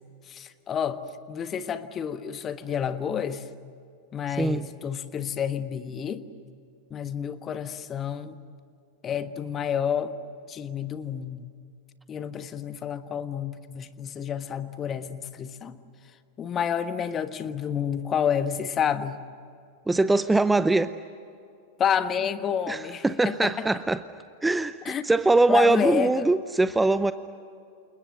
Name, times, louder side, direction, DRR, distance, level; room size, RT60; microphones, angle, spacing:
voice 1, 0.3-1.0 1.3-3.5 4.1-6.2 6.9-8.4 9.0-10.1 10.5-11.5 12.1-15.8 16.4-19.2 21.8-23.6 24.8-25.0 25.5-26.3, left 8 dB, 25° left, 10 dB, 1.5 m, -29 dB
voice 2, 19.9-20.9 22.7-24.0 24.4-27.1, right 2 dB, 10° right, 13 dB, 0.7 m, -22 dB
29.5 x 29.0 x 6.6 m, 2.4 s
figure-of-eight pair, 90°, 0 cm